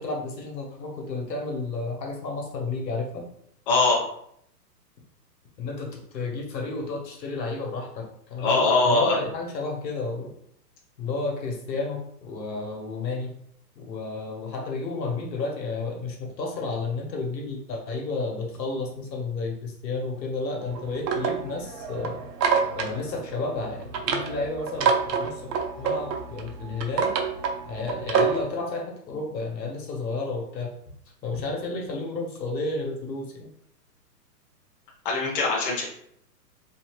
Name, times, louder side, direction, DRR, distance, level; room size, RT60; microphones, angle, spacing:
voice 1, 0.0-3.2 5.6-10.3 11.0-13.4 13.8-22.3 22.7-24.9 25.2-25.5 25.8-27.1 27.7-30.7 31.2-33.5, left 3 dB, 85° left, 0 dB, 1.1 m, -31 dB
voice 2, 3.7-4.0 8.4-9.2 35.0-35.8, left 3 dB, 35° left, -2 dB, 0.5 m, -21 dB
sound 1, 20.6-28.5, right 6 dB, 80° right, 0.7 m, -27 dB
2.7 x 2.3 x 3.0 m, 0.69 s
hypercardioid pair, 155°, 49 cm